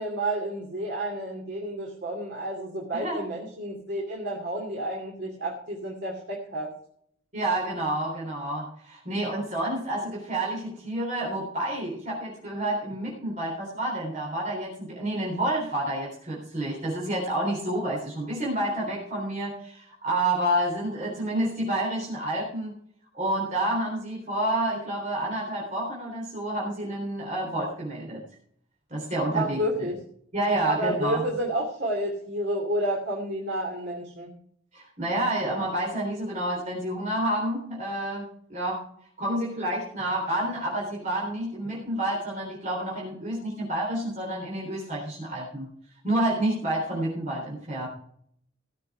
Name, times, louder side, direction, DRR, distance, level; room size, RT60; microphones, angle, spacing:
voice 1, 0.0-6.7 29.3-30.0 30.7-34.3, right 1 dB, 55° right, -2 dB, 2.7 m, -30 dB
voice 2, 2.9-3.2 7.3-22.8 23.1-28.2 28.9-29.6 30.3-31.2 34.7-38.8 39.2-45.7 46.0-47.9, right 1 dB, 35° right, -4 dB, 3.7 m, -29 dB
17.5 x 6.9 x 4.8 m, 0.65 s
head